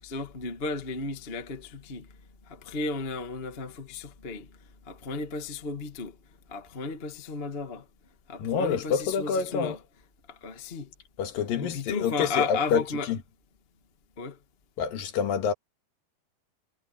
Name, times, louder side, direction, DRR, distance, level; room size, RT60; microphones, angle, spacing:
voice 1, 0.0-4.6 4.8-6.2 6.5-7.9 8.3-9.8 10.3-10.9 11.6-13.1 14.2-14.4, left 4 dB, 50° left, 0.7 m, -34 dB
voice 2, 8.4-9.8 11.2-13.2 14.8-15.5, left 7 dB, 65° left, 3.3 m, -27 dB
omnidirectional pair, 4.5 m